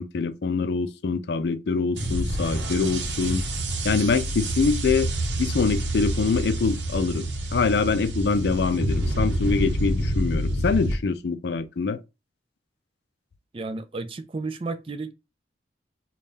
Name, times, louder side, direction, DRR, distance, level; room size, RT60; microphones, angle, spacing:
voice 1, 0.0-3.4 3.8-5.1 5.4-12.0, left 4 dB, 65° left, 0.4 m, -24 dB
sound 1, 2.0-10.9, right 1 dB, 80° right, 0.8 m, -27 dB
voice 2, 13.5-15.1, right 3 dB, 30° right, 0.4 m, -32 dB
3.5 x 2.3 x 4.0 m
head